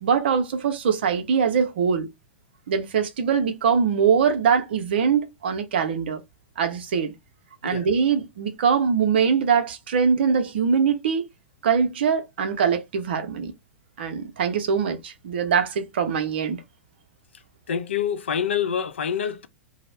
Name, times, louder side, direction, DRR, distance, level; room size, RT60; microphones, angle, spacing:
voice 1, 0.0-2.1 2.7-6.2 6.6-7.1 7.6-11.3 11.6-13.5 14.0-16.6, right 6 dB, 55° right, 0.6 m, -22 dB
voice 2, 17.7-19.5, left 8 dB, 65° left, 0.3 m, -26 dB
2.3 x 2.0 x 3.1 m
figure-of-eight pair, 95°, 7 cm